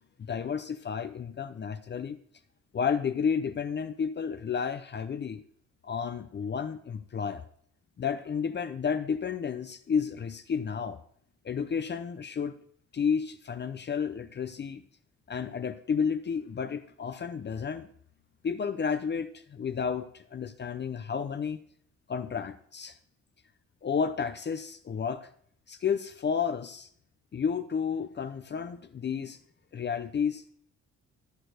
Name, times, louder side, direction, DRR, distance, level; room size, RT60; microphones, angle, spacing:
voice 1, 0.3-2.2 2.7-5.4 5.8-7.4 8.0-11.0 11.4-12.5 12.9-14.8 15.3-17.9 18.4-21.6 22.1-22.9 23.8-25.3 25.7-26.9 27.3-29.4 29.7-30.5, left 6 dB, 35° left, 10 dB, 0.7 m, -31 dB
13.0 x 4.5 x 6.4 m, 0.62 s
cardioid pair, 90°, 30 cm